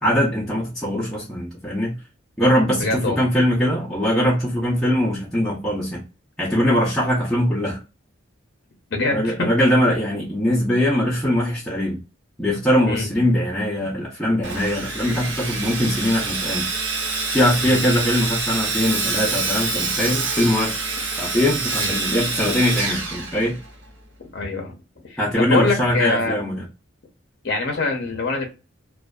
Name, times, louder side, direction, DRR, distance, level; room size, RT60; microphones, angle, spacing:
voice 1, 0.0-2.0 2.4-6.0 6.4-7.8 9.1-12.0 12.4-16.7 17.3-20.7 21.2-23.6 25.2-26.6, equal, 5° left, 0.5 m, -21 dB
voice 2, 2.8-3.3 8.9-9.5 12.9-13.1 17.6-17.8 21.8-21.9 24.3-24.8 25.0-26.6 27.4-28.5, left 3 dB, 55° left, 0.6 m, -24 dB
Sawing, 14.4-23.9, right 4 dB, 60° right, 0.7 m, -26 dB
2.5 x 2.2 x 2.2 m
head